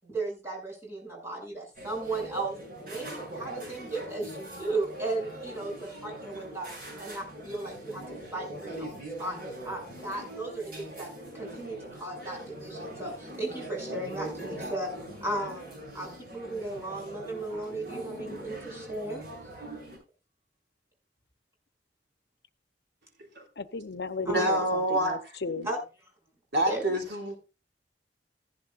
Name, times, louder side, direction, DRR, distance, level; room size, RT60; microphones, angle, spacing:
voice 1, 0.0-6.7 7.0-8.0 8.3-9.4 9.6-14.9 15.2-19.2 24.3-24.5 25.6-25.8 26.7-27.0, right 2 dB, 15° right, 6.6 m, -36 dB
sound 1, 1.7-20.0, right 1 dB, 55° right, 7.7 m, -42 dB
voice 2, 23.6-25.7, left 3 dB, 65° left, 0.8 m, -35 dB
voice 3, 24.3-25.2 25.6-25.7 26.5-27.4, right 1 dB, 75° right, 3.1 m, -27 dB
15.5 x 11.5 x 2.5 m
head